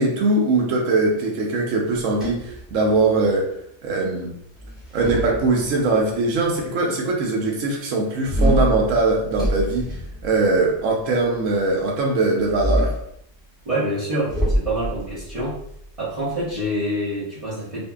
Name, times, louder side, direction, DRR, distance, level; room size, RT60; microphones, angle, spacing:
voice 1, 0.0-3.5 3.8-4.3 4.9-10.0 10.2-12.9, right 3 dB, 65° right, 0 dB, 0.8 m, -21 dB
sound 1, 1.9-3.3 4.6-6.0 8.2-10.8 12.4-13.1 14.3-16.6, equal, ahead, 0.8 m, -26 dB
voice 2, 13.6-15.6 16.0-17.8, right 1 dB, 40° right, -11 dB, 0.5 m, -26 dB
2.6 x 2.5 x 2.2 m, 0.72 s
omnidirectional pair, 1.7 m